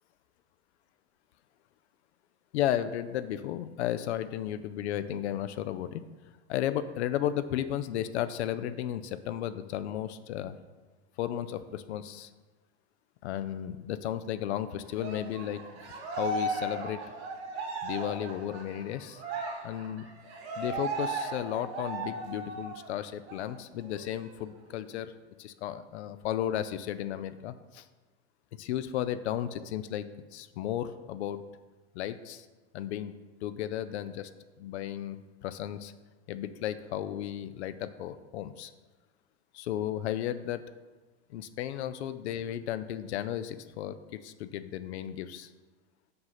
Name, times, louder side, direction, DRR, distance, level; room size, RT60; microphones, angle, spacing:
voice 1, 2.5-6.0 6.5-10.6 11.2-12.3 13.2-17.0 17.8-19.2 19.6-20.1 20.6-25.1 25.4-27.9 28.6-31.4 31.9-32.5 32.7-33.2 33.4-34.3 34.6-35.9 36.3-38.7 39.5-40.6 41.3-45.5, left 11 dB, 70° left, 12 dB, 0.5 m, -34 dB
Cheering, 14.9-22.9 23.3-23.4 23.8-24.8, right 2 dB, 65° right, 2.1 m, -36 dB
5.4 x 4.0 x 5.7 m, 1.2 s
hypercardioid pair, 105°, 34 cm